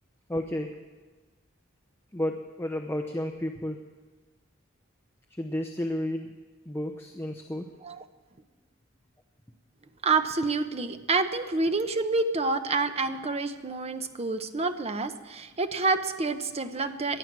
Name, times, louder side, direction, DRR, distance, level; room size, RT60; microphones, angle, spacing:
voice 1, 0.3-0.7 2.1-3.8 5.4-6.3 6.7-7.7, left 1 dB, 10° left, 4 dB, 0.8 m, -31 dB
voice 2, 10.0-17.2, right 3 dB, 30° right, 9 dB, 0.9 m, -28 dB
18.5 x 12.0 x 6.1 m, 1.3 s
head